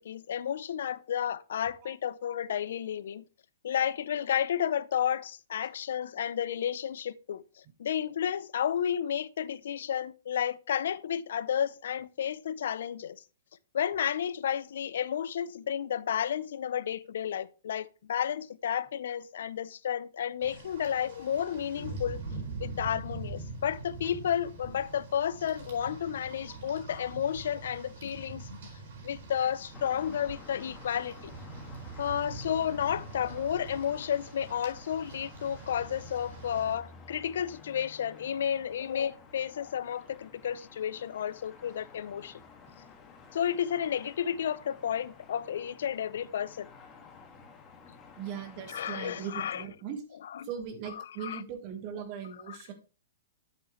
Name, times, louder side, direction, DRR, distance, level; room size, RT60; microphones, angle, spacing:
voice 1, 0.0-3.2 3.6-13.2 13.7-22.2 22.6-28.6 29.0-31.3 32.0-42.4 43.3-46.7 48.7-49.6 50.2-50.4 51.0-51.4 52.5-52.6, left 9 dB, 70° left, 0.5 m, -32 dB
Rain, 20.4-36.7, right 3 dB, 65° right, 4.5 m, -44 dB
sound 1, 29.7-49.6, left 5 dB, 25° left, 1.9 m, -52 dB
voice 2, 48.2-50.0 50.4-52.7, right 7 dB, 45° right, 1.4 m, -39 dB
8.2 x 8.1 x 3.1 m
hypercardioid pair, 130°, 0 cm